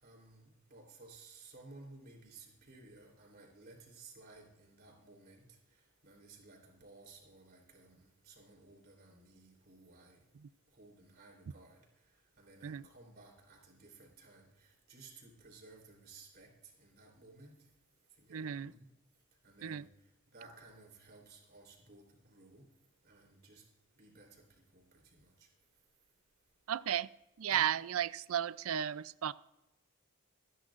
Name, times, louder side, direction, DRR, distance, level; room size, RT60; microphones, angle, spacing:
voice 1, 0.0-10.2 10.7-11.8 12.4-17.6 18.2-18.9 19.4-19.9 20.3-22.7 23.0-23.6 24.0-25.5 27.5-27.7, right 3 dB, 45° right, 0 dB, 3.5 m, -57 dB
voice 2, 18.3-18.7 19.6-19.9 26.7-27.1 27.4-29.3, right 10 dB, 80° right, 18 dB, 0.4 m, -34 dB
26.0 x 10.0 x 2.5 m, 0.93 s
head